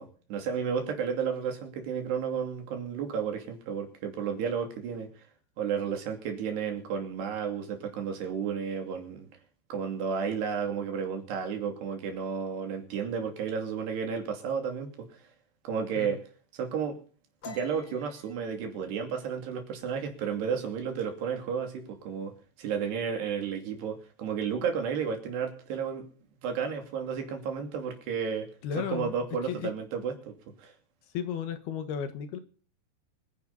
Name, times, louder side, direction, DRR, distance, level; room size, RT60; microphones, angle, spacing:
voice 1, 0.0-5.2 5.6-9.3 9.7-15.2 15.6-16.2 16.5-17.0 17.4-22.3 22.6-26.1 26.4-28.5 28.8-30.7, right 6 dB, 75° right, 4 dB, 4.9 m, -32 dB
sound 1, 17.4-20.9 21.2-21.5 21.9-22.4 22.7-23.4, left 8 dB, 40° left, 2.5 m, -50 dB
voice 2, 28.6-29.2 29.4-29.7 31.1-32.4, left 8 dB, 70° left, 10 dB, 3.3 m, -34 dB
25.0 x 10.5 x 4.1 m, 0.41 s
omnidirectional pair, 4.9 m